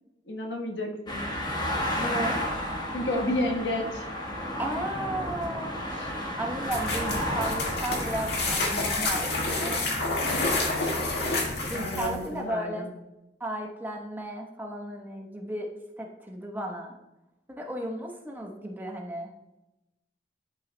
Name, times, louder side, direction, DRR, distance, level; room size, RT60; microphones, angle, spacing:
voice 1, 0.3-1.2 2.9-4.1 5.2-5.3 5.9-6.1 11.3-12.9, left 1 dB, 85° left, 1 dB, 1.2 m, -31 dB
sound 1, 1.1-8.6, equal, 25° left, 1.3 m, -32 dB
voice 2, 2.0-2.4 4.6-5.8 6.4-9.9 11.7-12.9 13.4-15.7 16.0-17.0 17.6-19.3, right 1 dB, 10° right, 1 dB, 0.9 m, -34 dB
sound 2, 6.7-12.3, left 2 dB, 65° left, 1.8 m, -28 dB
11.5 x 5.5 x 2.2 m, 0.93 s
head